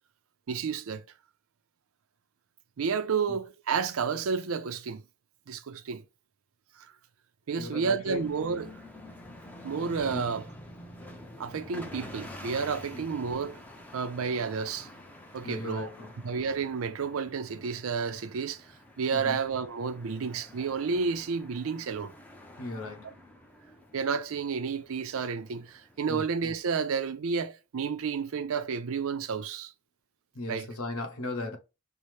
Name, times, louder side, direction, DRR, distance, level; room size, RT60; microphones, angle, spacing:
voice 1, 0.5-1.0 2.8-5.0 5.5-6.0 6.8-6.9 7.5-8.8 9.6-10.5 11.4-13.6 13.9-14.9 15.3-15.9 16.2-22.1 23.9-29.7 30.5-30.7, right 5 dB, 70° right, 0.4 m, -31 dB
voice 2, 7.6-8.2 10.1-10.2 12.9-13.1 15.4-16.1 19.1-19.4 22.6-23.2 26.1-26.2 30.3-31.6, left 2 dB, 75° left, 1.0 m, -37 dB
sound 1, 8.1-26.7, left 1 dB, 5° left, 0.5 m, -48 dB
5.4 x 2.0 x 3.1 m
head